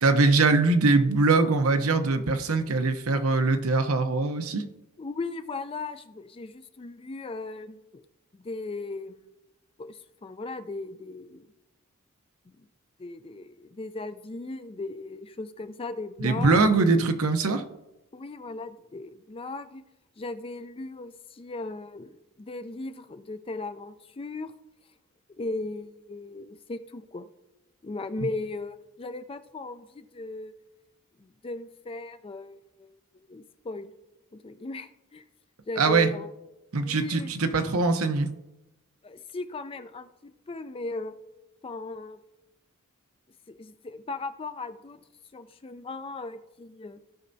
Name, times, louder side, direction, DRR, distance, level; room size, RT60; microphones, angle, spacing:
voice 1, 0.0-4.7 16.2-17.6 35.8-36.1 36.7-38.3, right 3 dB, 70° right, 7 dB, 0.8 m, -22 dB
voice 2, 5.0-8.0 8.3-9.2 9.8-11.5 12.6-12.7 13.0-16.6 18.1-19.8 20.2-24.5 25.4-27.3 27.8-30.5 31.2-32.9 33.3-33.9 34.3-35.2 35.7-36.3 36.9-37.3 39.0-41.1 41.6-42.2 43.5-45.0 45.3-47.0, left 3 dB, 25° left, 10 dB, 0.4 m, -37 dB
16.0 x 5.5 x 2.7 m, 0.95 s
head